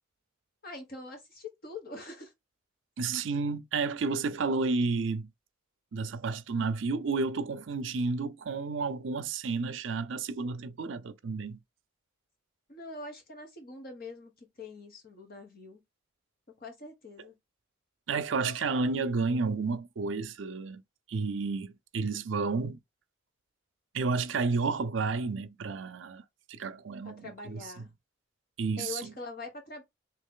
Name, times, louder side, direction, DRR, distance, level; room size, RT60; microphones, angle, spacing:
voice 1, 0.6-2.3 12.7-15.8 16.6-17.3 27.0-27.9 28.8-29.8, left 3 dB, 50° left, 1.4 m, -44 dB
voice 2, 3.0-5.3 5.9-11.6 18.1-20.8 21.1-22.8 23.9-26.2 26.5-27.8 28.6-29.1, right 4 dB, 65° right, 0.5 m, -31 dB
3.2 x 2.9 x 3.7 m
head